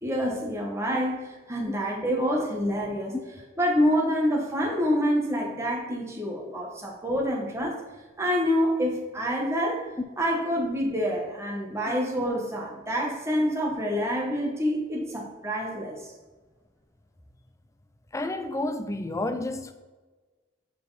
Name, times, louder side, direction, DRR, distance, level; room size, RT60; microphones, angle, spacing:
voice 1, 0.0-3.1 3.6-7.8 8.2-9.9 10.2-16.1, equal, 15° right, 1.3 m, -27 dB
voice 2, 18.1-19.7, left 2 dB, 15° left, 0.4 m, -31 dB
7.0 x 4.6 x 4.1 m
head